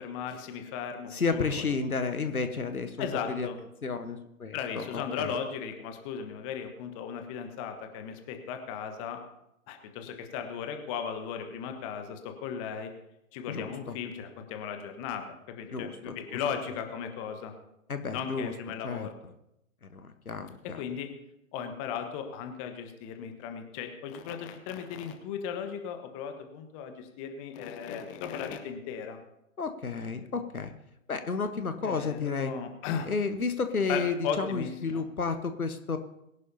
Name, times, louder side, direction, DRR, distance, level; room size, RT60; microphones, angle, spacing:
voice 1, 0.0-1.7 3.0-3.6 4.5-9.2 9.7-12.9 13.3-17.5 18.1-19.1 20.8-21.1 21.5-29.2 31.8-33.1 33.9-35.0, left 7 dB, 20° left, 6 dB, 1.2 m, -36 dB
voice 2, 1.1-3.5 3.8-5.3 13.5-14.0 15.7-16.4 17.9-18.5 18.8-19.1 19.8-20.8 29.6-30.7 31.1-32.5 33.1-36.0, left 4 dB, 80° left, 9 dB, 1.3 m, -32 dB
22.0 x 11.0 x 2.8 m, 0.83 s
figure-of-eight pair, 125°, 43 cm